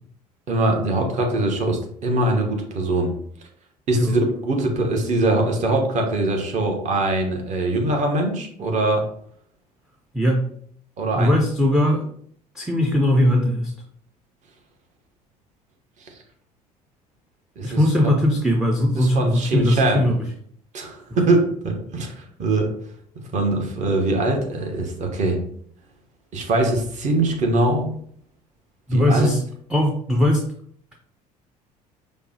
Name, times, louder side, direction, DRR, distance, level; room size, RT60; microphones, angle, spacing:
voice 1, 0.5-3.2 3.9-9.1 11.0-11.4 17.6-18.1 19.0-20.1 20.7-22.7 23.2-25.4 26.3-27.9 28.9-29.3, right 2 dB, 35° right, 2 dB, 0.9 m, -22 dB
voice 2, 10.1-10.5 11.1-12.1 12.5-13.7 17.6-20.3 21.1-21.2 28.9-29.4 29.7-30.5, left 1 dB, 5° right, 1 dB, 0.4 m, -20 dB
5.1 x 2.1 x 2.7 m, 0.63 s
figure-of-eight pair, 60°, 20 cm